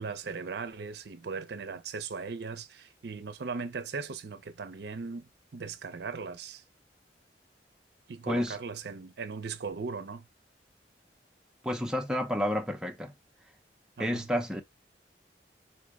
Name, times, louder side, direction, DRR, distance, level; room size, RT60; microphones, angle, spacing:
voice 1, 0.0-6.6 8.1-10.3 14.0-14.3, right 4 dB, 60° right, 0.5 m, -38 dB
voice 2, 8.3-8.6 11.6-13.1 14.0-14.6, equal, 5° right, 0.5 m, -30 dB
4.4 x 2.1 x 4.6 m
head